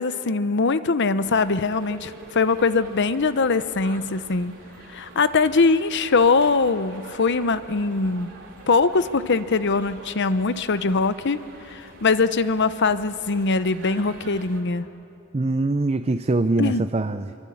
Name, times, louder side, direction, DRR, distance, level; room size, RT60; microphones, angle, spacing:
voice 1, 0.0-4.5 4.9-8.3 8.7-14.9 16.6-16.8, left 4 dB, 55° left, 13 dB, 0.8 m, -22 dB
sound 1, 1.2-14.6, right 2 dB, 65° right, 3.8 m, -45 dB
voice 2, 15.3-17.4, right 2 dB, 30° right, 9 dB, 0.6 m, -23 dB
25.0 x 24.0 x 8.6 m, 2.8 s
head